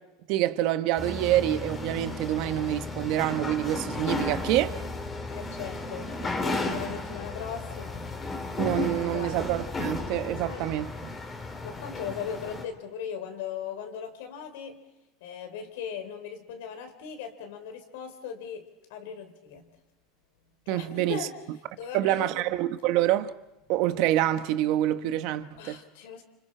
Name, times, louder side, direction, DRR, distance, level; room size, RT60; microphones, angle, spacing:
voice 1, 0.3-4.8 8.6-11.2 20.7-21.3 21.9-23.3 23.7-25.8, right 13 dB, 60° right, 1.1 m, -26 dB
sound 1, 1.0-12.6, left 3 dB, 20° left, 3.3 m, -34 dB
voice 2, 5.3-8.2 8.9-9.5 10.4-10.8 11.6-14.9 15.2-19.7 20.7-22.5 25.5-26.2, left 7 dB, 80° left, 3.6 m, -39 dB
30.0 x 26.5 x 4.4 m
supercardioid pair, 125°, 0 cm